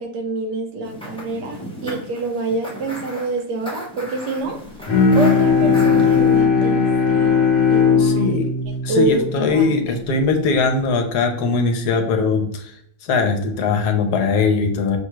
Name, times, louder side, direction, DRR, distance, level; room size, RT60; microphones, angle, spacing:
voice 1, 0.0-4.6 5.1-8.4 8.7-10.0, right 2 dB, 80° right, 4 dB, 1.4 m, -26 dB
sound 1, 0.8-6.4, equal, 5° left, 0.6 m, -33 dB
Bowed string instrument, 4.9-10.3, left 5 dB, 60° left, 1.4 m, -18 dB
voice 2, 8.0-8.5 8.8-12.7 13.0-15.0, left 4 dB, 75° left, 5 dB, 1.2 m, -20 dB
5.9 x 2.3 x 3.1 m, 0.70 s
omnidirectional pair, 1.8 m